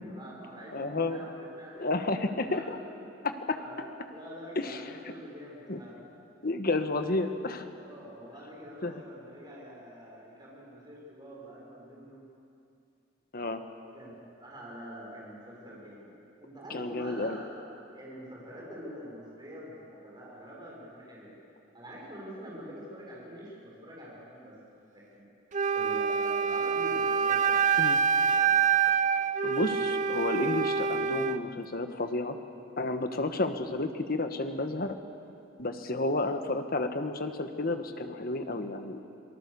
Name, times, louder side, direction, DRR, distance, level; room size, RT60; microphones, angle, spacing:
voice 1, 0.1-2.7 3.2-3.3 3.5-6.0 7.8-12.3 13.9-16.1 16.4-17.5 17.9-21.4 21.7-24.5 24.9-25.2 25.7-28.0 28.3-28.5 28.8-28.9, equal, 25° right, -5 dB, 6.9 m, -46 dB
voice 2, 0.7-1.2 1.8-2.8 3.2-3.6 4.6-4.8 5.7-5.8 6.4-7.7 8.8-8.9 13.3-13.6 16.7-17.4 27.8-28.0 29.4-32.4 32.8-35.0 35.6-39.0, left 2 dB, 50° left, 7 dB, 1.4 m, -31 dB
Wind instrument woodwind instrument, 25.5-31.4, right 6 dB, 40° right, 0.6 m, -26 dB
27.5 x 19.0 x 7.0 m, 2.5 s
head